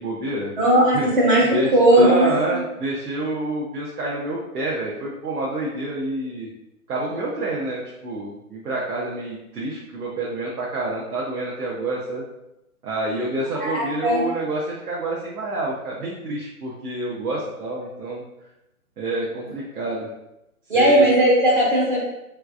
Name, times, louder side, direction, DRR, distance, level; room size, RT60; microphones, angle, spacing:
voice 1, 0.0-0.5 0.9-1.1 1.5-6.5 6.9-12.2 12.8-18.2 19.0-20.1 20.7-21.1, right 2 dB, 85° right, -4 dB, 0.9 m, -28 dB
voice 2, 0.6-2.6 13.6-14.2 20.7-22.0, right 1 dB, 35° right, -3 dB, 0.6 m, -17 dB
3.3 x 3.1 x 2.4 m, 0.89 s
hypercardioid pair, 160°, 44 cm